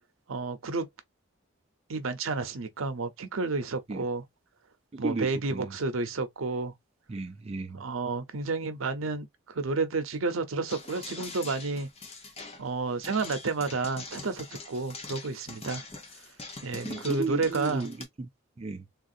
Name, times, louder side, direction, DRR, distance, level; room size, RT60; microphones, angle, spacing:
voice 1, 0.3-0.9 1.9-4.2 5.0-6.7 7.7-11.9 12.6-15.8 16.6-17.9, right 3 dB, 90° right, 0.7 m, -31 dB
voice 2, 4.9-5.8 7.1-7.9 16.8-18.3 18.6-18.9, right 3 dB, 30° right, 0.4 m, -34 dB
sound 1, 10.7-18.0, left 3 dB, 30° left, 0.7 m, -43 dB
3.6 x 2.5 x 2.6 m
head